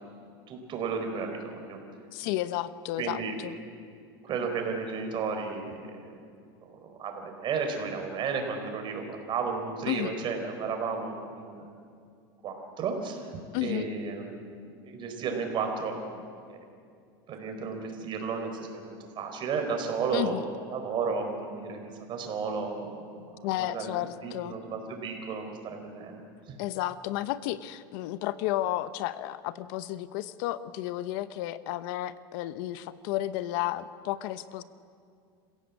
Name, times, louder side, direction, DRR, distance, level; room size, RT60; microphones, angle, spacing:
voice 1, 0.5-1.8 3.0-3.3 4.2-6.1 6.8-11.6 12.4-13.3 13.6-16.2 16.5-16.6 17.3-23.9 24.2-26.2, right 5 dB, 40° right, 4 dB, 4.4 m, -33 dB
voice 2, 2.1-3.6 9.9-10.1 13.5-13.9 20.1-20.4 23.4-24.6 26.6-34.6, left 14 dB, 70° left, 14 dB, 1.0 m, -32 dB
27.0 x 16.0 x 8.5 m, 2.4 s
supercardioid pair, 120°, 12 cm